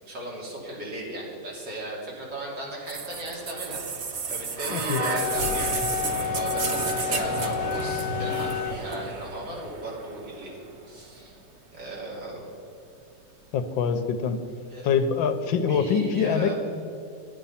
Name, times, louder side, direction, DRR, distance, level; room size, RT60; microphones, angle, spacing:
voice 1, 0.0-10.5 10.9-11.4 11.7-12.5 14.7-14.9 15.7-16.5, right 1 dB, 65° right, -4 dB, 3.5 m, -36 dB
sound 1, 2.9-10.8 11.8-11.9, right 4 dB, 45° right, 1.0 m, -32 dB
voice 2, 4.7-5.0 13.5-14.4 14.8-16.5, left 6 dB, 90° left, 9 dB, 1.6 m, -24 dB
Wind instrument woodwind instrument, 4.9-8.8, left 9 dB, 65° left, 1.3 m, -30 dB
11.0 x 9.8 x 5.7 m, 2.8 s
omnidirectional pair, 2.0 m